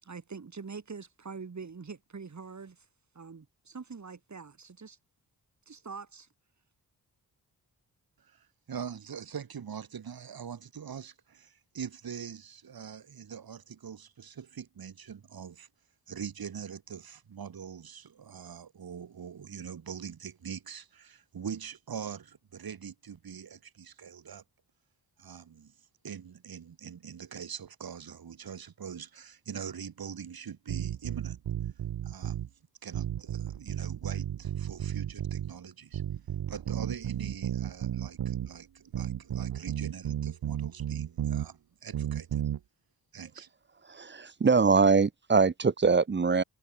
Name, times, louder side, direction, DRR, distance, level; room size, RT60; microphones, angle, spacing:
voice 1, 0.0-2.9 3.1-5.0 5.7-6.3, right 5 dB, 45° right, 5.8 m, -44 dB
voice 2, 8.2-15.7 16.1-24.4 25.2-25.7 26.0-31.4 32.0-32.5 32.8-36.0 36.5-42.4 43.1-43.5, right 7 dB, 65° right, 3.3 m, -43 dB
sound 1, 30.7-32.5 32.9-35.5 35.9-38.5 38.9-41.5 41.9-42.6, right 10 dB, 85° right, 1.5 m, -33 dB
voice 3, 43.9-46.4, right 4 dB, 30° right, 0.8 m, -23 dB
cardioid pair, 90°, 38 cm